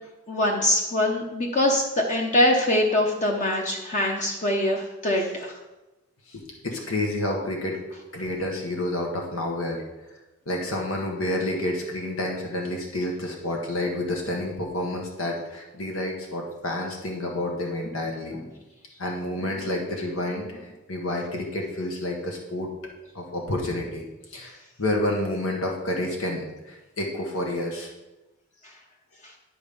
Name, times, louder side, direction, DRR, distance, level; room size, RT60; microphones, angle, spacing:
voice 1, 0.3-5.6 28.6-28.7 29.2-29.3, left 1 dB, 35° left, 1 dB, 1.0 m, -23 dB
voice 2, 6.3-7.8 8.1-9.8 10.4-18.5 19.0-22.7 23.1-24.0 24.3-27.9, left 1 dB, 80° left, 0 dB, 1.6 m, -29 dB
11.0 x 5.2 x 5.5 m, 1.0 s
head